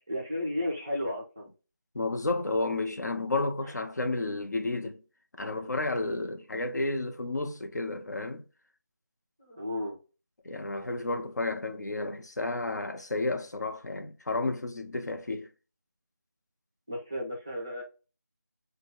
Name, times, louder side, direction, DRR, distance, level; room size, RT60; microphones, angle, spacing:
voice 1, 0.1-1.5 4.0-4.3 9.4-10.0 16.9-17.8, left 1 dB, 10° right, 0.4 m, -34 dB
voice 2, 1.9-5.0 5.4-8.4 10.4-15.5, left 2 dB, 65° left, 0.7 m, -31 dB
3.9 x 2.2 x 3.5 m
figure-of-eight pair, 170°, 10 cm